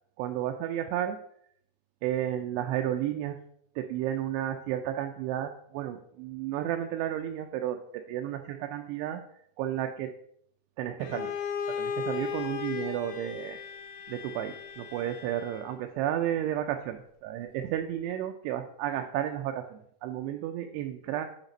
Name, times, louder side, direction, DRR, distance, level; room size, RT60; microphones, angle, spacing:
voice 1, 0.2-1.2 2.0-3.4 3.8-9.2 9.6-10.1 10.8-11.4 11.7-13.6 14.1-21.3, right 11 dB, 85° right, 5 dB, 2.5 m, -32 dB
Bowed string instrument, 11.0-15.8, left 7 dB, 85° left, 3.2 m, -36 dB
8.9 x 5.8 x 3.9 m, 0.70 s
omnidirectional pair, 5.1 m